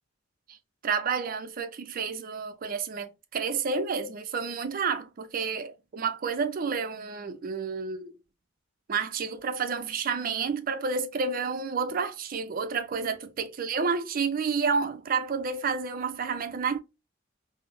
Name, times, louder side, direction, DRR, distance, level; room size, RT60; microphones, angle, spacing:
voice 1, 0.8-8.2 8.9-16.8, right 5 dB, 45° right, 0.5 m, -30 dB
3.5 x 2.0 x 2.5 m
head